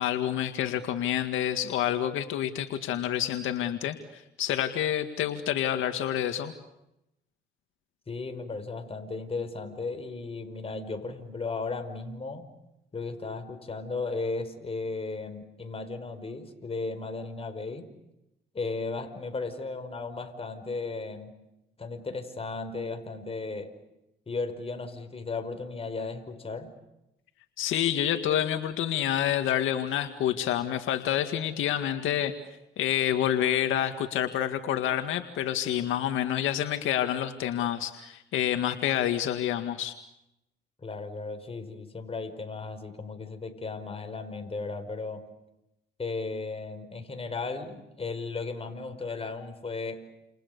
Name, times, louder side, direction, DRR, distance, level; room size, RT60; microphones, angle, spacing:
voice 1, 0.0-6.5 27.6-32.3 32.8-39.9, left 11 dB, 85° left, 7 dB, 2.0 m, -28 dB
voice 2, 8.1-12.5 12.9-17.9 18.5-21.3 21.8-23.7 24.3-26.7 40.8-45.3 46.0-50.0, left 3 dB, 30° left, 7 dB, 5.2 m, -35 dB
30.0 x 29.0 x 6.9 m, 0.88 s
cardioid pair, 90°, 20 cm